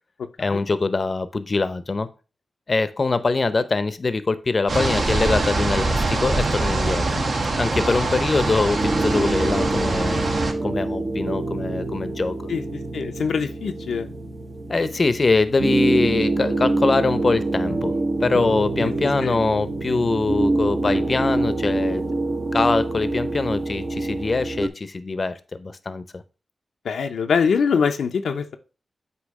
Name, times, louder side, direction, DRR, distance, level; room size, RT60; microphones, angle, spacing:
voice 1, 0.4-2.1 2.7-7.2 7.6-10.3 10.6-12.4 14.7-17.9 18.2-22.0 22.5-26.2, left 3 dB, 50° left, 0.6 m, -23 dB
sound 1, 4.7-10.5, right 2 dB, 70° right, 1.4 m, -23 dB
sound 2, 8.8-24.7, right 2 dB, 50° right, 0.9 m, -25 dB
voice 2, 12.5-14.1 18.8-18.9 19.2-19.4 26.8-28.6, left 6 dB, 90° left, 0.6 m, -24 dB
8.3 x 2.8 x 5.2 m
cardioid pair, 50°, 0 cm